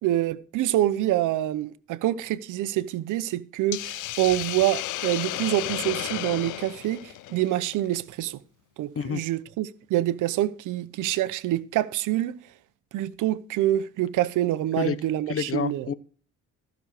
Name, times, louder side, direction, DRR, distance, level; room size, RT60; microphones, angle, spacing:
voice 1, 0.0-8.4 8.8-12.4 12.9-15.9, right 14 dB, 90° right, 0.9 m, -26 dB
Hiss, 3.7-8.0, left 16 dB, 85° left, 0.6 m, -33 dB
voice 2, 15.3-15.9, left 7 dB, 50° left, 1.0 m, -28 dB
15.0 x 6.5 x 4.9 m
cardioid pair, 90°, 30 cm